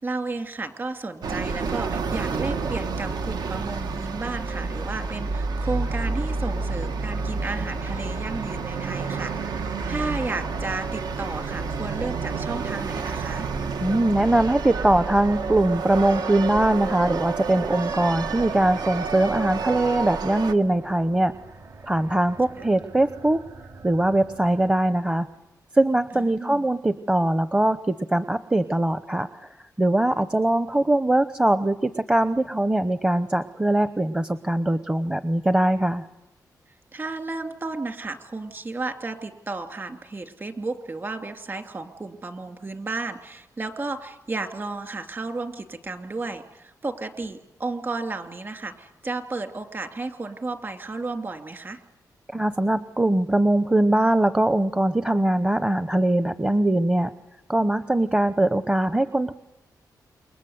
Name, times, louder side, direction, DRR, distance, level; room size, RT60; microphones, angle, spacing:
voice 1, 0.0-13.5 26.1-26.7 36.9-51.8, right 3 dB, 30° right, 7 dB, 2.6 m, -33 dB
sound 1, 1.2-20.5, right 4 dB, 80° right, 1.6 m, -29 dB
voice 2, 13.8-21.3 21.8-23.4 23.8-25.3 25.7-36.1 52.3-57.1 57.5-59.3, right 1 dB, 15° right, 11 dB, 0.8 m, -22 dB
sound 2, 14.7-25.4, right 3 dB, 50° right, 2.4 m, -45 dB
28.5 x 23.0 x 8.0 m, 1.0 s
wide cardioid pair, 115°, 7 cm